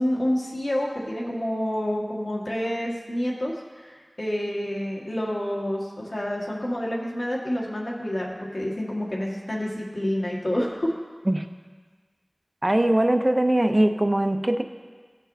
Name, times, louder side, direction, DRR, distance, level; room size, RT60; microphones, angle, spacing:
voice 1, 0.0-10.9, equal, 80° left, -3 dB, 1.7 m, -28 dB
voice 2, 12.6-14.6, right 1 dB, 40° right, 6 dB, 0.6 m, -21 dB
18.0 x 6.2 x 2.7 m, 1.5 s
wide cardioid pair, 45°, 0 cm